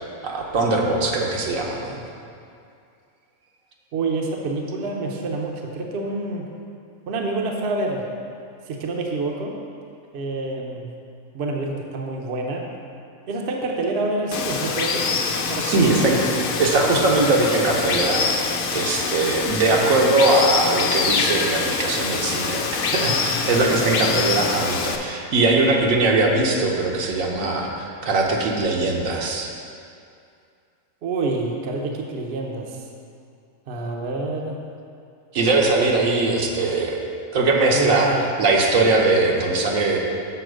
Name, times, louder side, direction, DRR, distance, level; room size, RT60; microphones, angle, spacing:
voice 1, 0.2-2.0 15.6-16.2 16.6-29.5 35.3-37.0 37.3-38.1 38.4-40.0, right 2 dB, 75° right, -1 dB, 1.2 m, -21 dB
voice 2, 3.9-6.5 7.1-8.0 8.7-9.5 10.1-10.9 11.3-12.7 13.3-15.1 15.5-16.2 31.0-32.8 33.7-34.6 37.7-38.3, right 3 dB, 55° right, 1 dB, 0.9 m, -27 dB
Water, 14.3-25.0, left 5 dB, 80° left, 1.0 m, -25 dB
6.9 x 4.1 x 6.2 m, 2.4 s
omnidirectional pair, 1.4 m